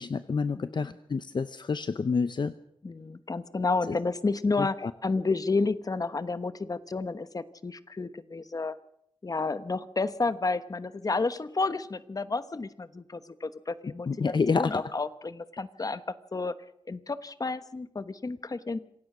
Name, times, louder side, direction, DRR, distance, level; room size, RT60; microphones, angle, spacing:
voice 1, 0.0-2.5 4.6-4.9 14.1-14.7, left 5 dB, 60° left, 12 dB, 0.7 m, -28 dB
voice 2, 0.6-1.0 2.8-8.8 9.2-14.1 14.5-16.6 16.9-18.8, left 3 dB, 45° left, 13 dB, 1.1 m, -31 dB
26.5 x 16.5 x 6.2 m, 0.73 s
wide cardioid pair, 90°, 9 cm